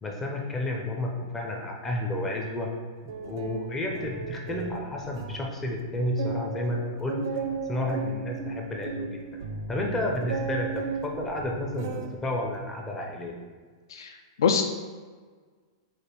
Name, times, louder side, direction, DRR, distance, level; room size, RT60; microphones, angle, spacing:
voice 1, 0.0-2.7 3.2-7.2 7.7-9.4 9.7-13.4, left 1 dB, 10° left, 0 dB, 0.4 m, -31 dB
sound 1, 3.1-5.5 5.8-5.9 6.2-12.2 12.5-13.0, right 5 dB, 55° right, 0.4 m, -35 dB
voice 2, 13.9-14.6, left 6 dB, 85° left, 5 dB, 0.4 m, -25 dB
5.0 x 2.4 x 4.4 m, 1.5 s
supercardioid pair, 175°, 2 cm